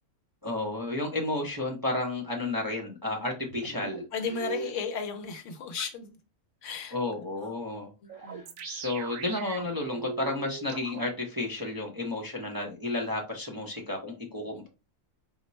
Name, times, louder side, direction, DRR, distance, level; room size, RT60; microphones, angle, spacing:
voice 1, 0.4-4.0 6.9-7.9 8.2-14.7, left 2 dB, 20° right, 0.6 m, -32 dB
sound 1, 3.5-5.0 5.8-5.9 8.1-11.1, right 6 dB, 75° right, 1.0 m, -39 dB
voice 2, 4.1-6.2 6.6-7.0 7.4-7.5 8.0-8.4 14.5-14.6, left 6 dB, 70° left, 1.0 m, -35 dB
4.3 x 2.1 x 4.0 m
omnidirectional pair, 1.4 m